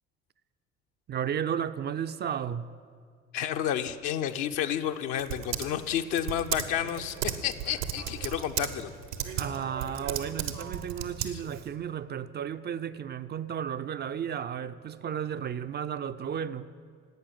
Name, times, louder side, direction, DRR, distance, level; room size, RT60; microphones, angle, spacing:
voice 1, 1.1-2.7 9.4-16.7, right 8 dB, 25° right, 0.5 m, -33 dB
voice 2, 3.3-7.2 7.4-8.9 11.3-11.4, left 10 dB, 55° left, 0.8 m, -31 dB
Typing, 4.3-11.7, right 9 dB, 75° right, 1.0 m, -36 dB
12.0 x 8.7 x 9.9 m
figure-of-eight pair, 55°, 39 cm